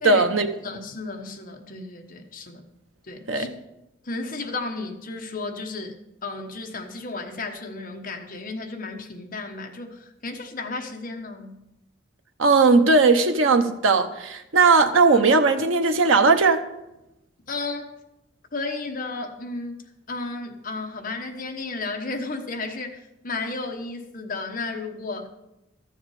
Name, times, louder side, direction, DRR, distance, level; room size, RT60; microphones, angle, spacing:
voice 1, 0.0-0.5 3.3-3.4 12.4-16.6, right 3 dB, 85° right, 7 dB, 0.9 m, -18 dB
voice 2, 0.6-2.6 3.1-3.5 4.0-5.9 6.2-11.6 17.5-18.0 18.5-19.8 20.1-25.3, left 3 dB, 45° left, 3 dB, 1.1 m, -33 dB
13.0 x 7.1 x 4.8 m, 0.91 s
head